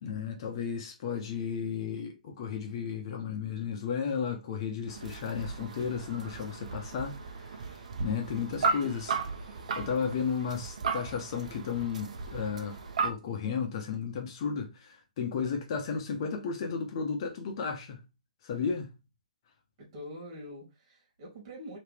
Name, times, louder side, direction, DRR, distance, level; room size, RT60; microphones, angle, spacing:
voice 1, 0.0-9.2 9.8-18.0 18.4-18.9, left 6 dB, 40° left, 1.2 m, -34 dB
sound 1, 4.9-13.1, right 4 dB, 60° right, 0.9 m, -35 dB
voice 2, 19.8-21.8, equal, 40° right, 2.9 m, -44 dB
4.6 x 3.2 x 3.4 m
hypercardioid pair, 150°, 4 cm